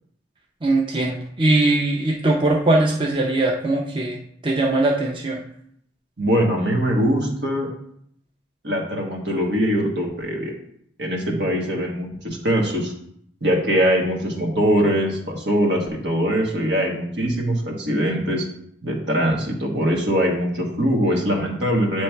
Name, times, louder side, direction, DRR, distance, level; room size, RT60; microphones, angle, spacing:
voice 1, 0.6-5.4, right 2 dB, 25° right, -1 dB, 0.6 m, -21 dB
voice 2, 6.2-7.7 8.6-10.5 11.0-12.9 13.4-18.5 18.8-22.0, equal, 75° right, 0 dB, 1.5 m, -22 dB
8.4 x 3.1 x 4.5 m, 0.69 s
head